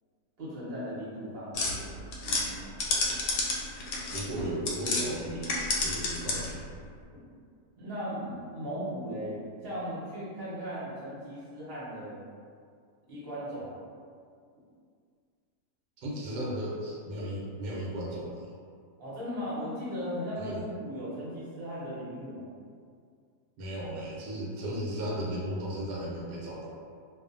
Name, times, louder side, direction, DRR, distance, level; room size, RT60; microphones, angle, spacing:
voice 1, 0.4-2.7 7.8-12.2 13.1-13.8 19.0-22.5, equal, 40° right, -10 dB, 0.9 m, -37 dB
sound 1, 1.5-5.1 5.4-6.6, left 2 dB, 75° left, 1.0 m, -30 dB
voice 2, 4.1-5.5 5.8-6.7 16.0-18.5 20.4-20.6 23.6-26.7, right 1 dB, 80° right, -5 dB, 1.2 m, -35 dB
2.6 x 2.4 x 2.5 m, 2.2 s
omnidirectional pair, 1.9 m